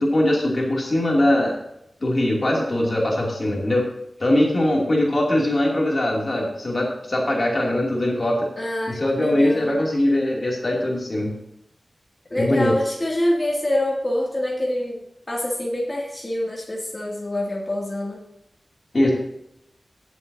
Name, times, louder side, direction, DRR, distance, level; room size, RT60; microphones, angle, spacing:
voice 1, 0.0-1.6 2.0-3.9 4.2-8.5 9.0-11.3 12.4-12.7 18.9-19.1, left 1 dB, 45° left, -2 dB, 2.8 m, -21 dB
voice 2, 2.5-3.2 8.6-9.8 12.3-18.2, left 1 dB, 25° left, -4 dB, 2.5 m, -26 dB
16.5 x 8.0 x 2.8 m, 0.81 s
wide cardioid pair, 75°, 0 cm